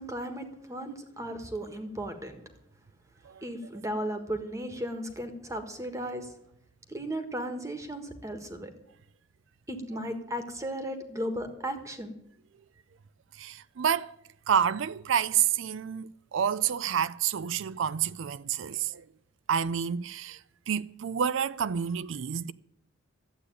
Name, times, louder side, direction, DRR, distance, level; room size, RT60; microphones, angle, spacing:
voice 1, 0.0-2.4 3.4-6.3 6.9-8.7 9.7-12.1, right 1 dB, 15° right, 1.5 m, -35 dB
voice 2, 13.4-14.1 14.5-19.1 19.5-20.4 20.7-22.5, right 8 dB, 70° right, 0.4 m, -29 dB
12.5 x 8.3 x 9.9 m
head